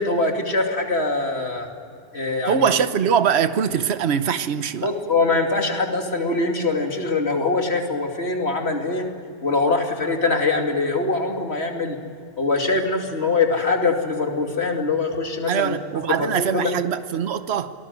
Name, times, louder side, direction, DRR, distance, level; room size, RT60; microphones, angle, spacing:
voice 1, 0.0-1.7 2.1-2.7 4.8-9.1 9.4-12.0 12.4-15.8 16.1-16.7, left 3 dB, 75° left, 3.0 m, -23 dB
voice 2, 2.5-4.9 15.5-17.7, right 8 dB, 75° right, 1.2 m, -22 dB
28.0 x 19.5 x 9.3 m
omnidirectional pair, 1.1 m